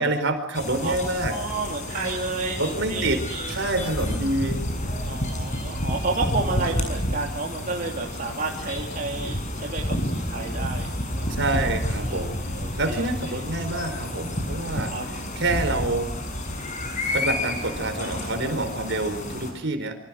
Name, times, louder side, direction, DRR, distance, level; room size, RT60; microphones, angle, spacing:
voice 1, 0.0-1.4 2.6-3.2 3.5-4.6 11.3-14.9 15.4-16.1 17.1-20.0, right 2 dB, 60° right, 8 dB, 4.7 m, -27 dB
sound 1, 0.5-19.5, left 1 dB, 35° left, 6.7 m, -30 dB
voice 2, 1.3-3.6 5.0-11.3 12.1-13.4 14.9-15.1, right 3 dB, 40° right, -1 dB, 3.0 m, -31 dB
28.0 x 26.0 x 6.3 m, 0.63 s
head